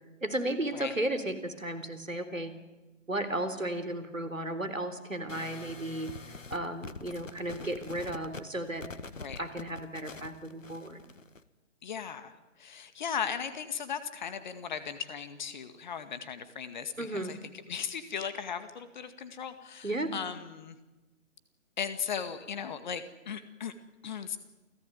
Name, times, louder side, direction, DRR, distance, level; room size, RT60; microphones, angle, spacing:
voice 1, 0.2-2.5 3.1-6.1 6.5-8.8 9.4-11.0 17.0-17.3 19.8-20.1, right 1 dB, 85° right, 11 dB, 3.9 m, -34 dB
sound 1, 5.3-11.4, left 3 dB, 75° left, 1.7 m, -45 dB
voice 2, 9.1-9.4 11.8-20.8 21.8-23.7 24.0-24.4, left 7 dB, 35° left, 11 dB, 2.1 m, -37 dB
28.5 x 16.5 x 9.6 m, 1.1 s
figure-of-eight pair, 140°, 38 cm